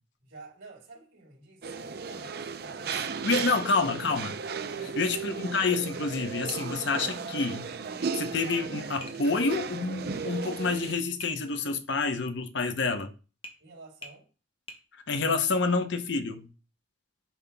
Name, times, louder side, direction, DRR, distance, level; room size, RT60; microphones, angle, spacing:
voice 1, 0.2-3.6 4.7-5.1 13.6-14.3, right 3 dB, 75° right, 3.2 m, -51 dB
sound 1, 1.6-10.9, right 5 dB, 50° right, 0.5 m, -35 dB
voice 2, 2.9-4.3 5.0-7.7 8.1-13.1 14.9-16.5, left 4 dB, 60° left, 0.7 m, -28 dB
Tap, 9.0-9.3 11.2-11.4 13.4-13.6 14.0-14.2 14.7-14.9, left 1 dB, 25° left, 0.9 m, -44 dB
9.1 x 5.7 x 2.3 m
head